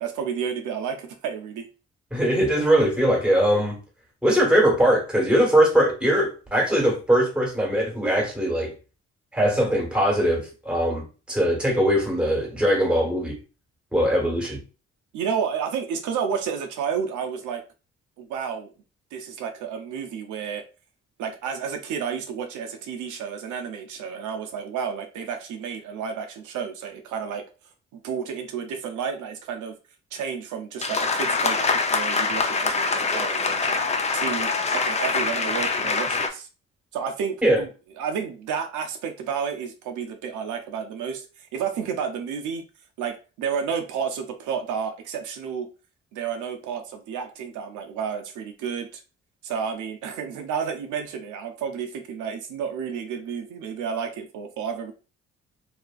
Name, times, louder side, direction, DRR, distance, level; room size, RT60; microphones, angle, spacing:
voice 1, 0.0-1.7 15.1-17.6 18.2-18.7 19.1-20.6 21.2-27.4 27.9-29.8 30.1-33.8 34.1-36.5 36.9-37.7 38.0-42.6 43.0-45.7 46.1-49.0 49.4-54.9, right 7 dB, 80° right, 0.5 m, -31 dB
voice 2, 2.1-3.8 4.2-8.7 9.3-13.4 13.9-14.6 37.4-37.6, equal, 5° right, 1.2 m, -21 dB
sound 1, 30.8-36.3, left 4 dB, 25° left, 0.4 m, -24 dB
2.7 x 2.5 x 2.3 m
cardioid pair, 90°, 30 cm